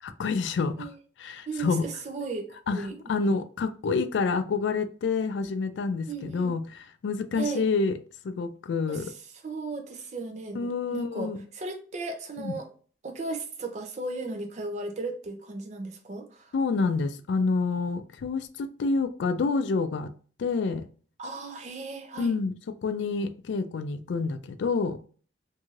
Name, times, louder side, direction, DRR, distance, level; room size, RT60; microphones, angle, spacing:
voice 1, 0.0-0.9 1.2-1.8 2.7-7.9 8.2-9.1 10.5-11.4 12.4-12.5 16.5-20.1 20.4-20.9 22.2-22.5 22.8-25.0, left 4 dB, 75° left, 0.3 m, -28 dB
voice 2, 1.5-3.0 6.1-6.5 7.4-7.7 8.9-9.1 9.4-12.7 13.0-16.5 21.2-22.3, right 3 dB, 40° right, 0.5 m, -36 dB
3.1 x 2.6 x 2.3 m
head